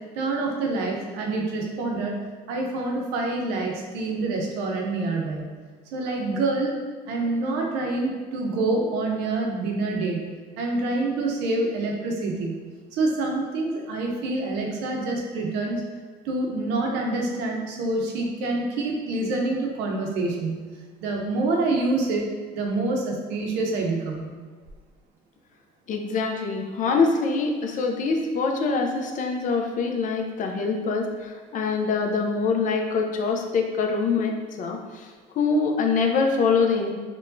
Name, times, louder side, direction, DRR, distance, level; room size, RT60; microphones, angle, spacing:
voice 1, 0.1-2.1 2.5-5.4 5.9-6.7 7.1-10.3 10.6-12.6 12.9-15.8 16.2-20.6 21.0-22.3 22.5-24.3, right 2 dB, 85° right, 0 dB, 0.7 m, -26 dB
voice 2, 25.9-36.9, left 4 dB, 50° left, 3 dB, 0.5 m, -24 dB
4.5 x 2.2 x 2.6 m, 1.5 s
supercardioid pair, 95°, 17 cm